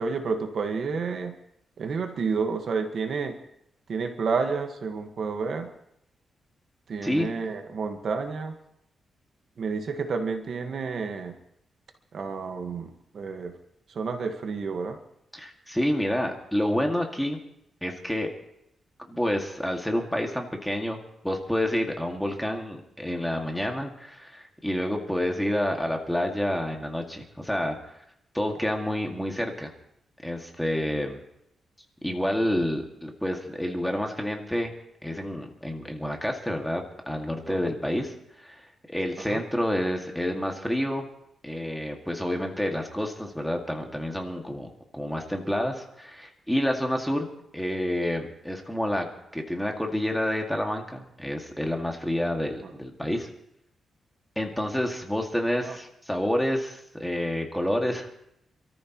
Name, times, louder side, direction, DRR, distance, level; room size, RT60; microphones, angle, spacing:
voice 1, 0.0-1.3 1.8-3.4 3.9-5.7 6.9-8.5 9.6-11.4 12.1-13.6 13.9-15.0 37.5-37.6 39.3-39.4 52.6-52.7 55.6-55.7, right 5 dB, 60° right, 6 dB, 1.5 m, -30 dB
voice 2, 15.3-17.4 17.8-18.3 19.1-27.8 28.3-29.7 30.2-31.2 32.0-34.7 35.0-38.1 38.4-38.6 38.9-41.1 41.4-47.3 47.5-49.1 49.3-53.3 54.4-58.1, left 1 dB, 5° left, 2 dB, 2.0 m, -28 dB
27.5 x 14.0 x 3.0 m, 0.77 s
cardioid pair, 115°, 0 cm